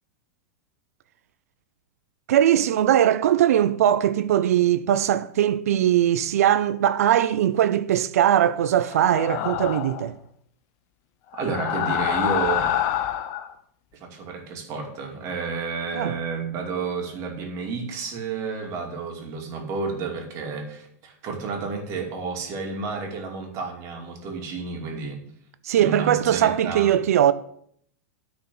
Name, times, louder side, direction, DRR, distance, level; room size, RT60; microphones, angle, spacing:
voice 1, 2.3-10.1 15.9-16.2 25.6-27.3, right 11 dB, 75° right, 0.5 m, -20 dB
sound 1, 8.9-10.1 11.3-13.5, left 11 dB, 45° left, 0.8 m, -26 dB
voice 2, 11.4-12.7 14.0-25.2 25.8-26.9, right 4 dB, 40° right, 2.4 m, -31 dB
9.6 x 4.3 x 7.6 m
hypercardioid pair, 125°, 8 cm